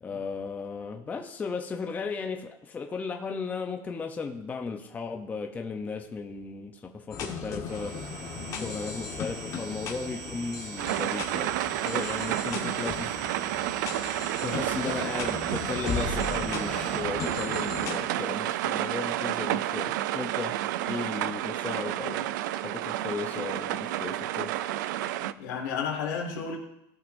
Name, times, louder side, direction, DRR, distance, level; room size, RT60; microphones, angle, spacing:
voice 1, 0.0-13.6 14.4-20.6 20.8-24.6, left 4 dB, 15° left, 0.7 m, -36 dB
sound 1, 7.1-18.0, left 6 dB, 35° left, 1.4 m, -37 dB
sound 2, 7.7-17.0, right 4 dB, 75° right, 3.0 m, -43 dB
voice 2, 8.3-8.7 25.4-26.6, left 6 dB, 90° left, 2.3 m, -32 dB
sound 3, 10.8-25.3, right 14 dB, 90° right, 0.4 m, -30 dB
16.0 x 5.9 x 2.7 m
supercardioid pair, 150°, 10 cm